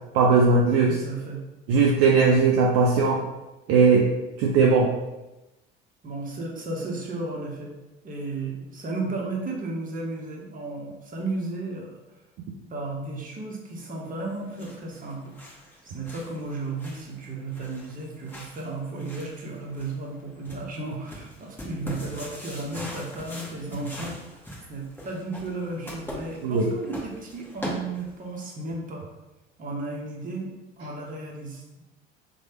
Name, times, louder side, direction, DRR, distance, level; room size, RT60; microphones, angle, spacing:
voice 1, 0.1-1.0 1.7-3.2 3.7-4.1 4.4-4.9 26.4-26.7, right 4 dB, 50° right, -1 dB, 0.5 m, -19 dB
voice 2, 0.9-1.4 6.0-7.7 8.0-12.0 12.7-15.3 15.8-24.4 24.7-29.1 29.6-30.5 30.8-31.8, right 2 dB, 30° right, -1 dB, 0.8 m, -34 dB
sound 1, 14.2-28.4, equal, 5° left, 1.0 m, -42 dB
3.1 x 2.2 x 2.8 m, 1.0 s
figure-of-eight pair, 60°, 30 cm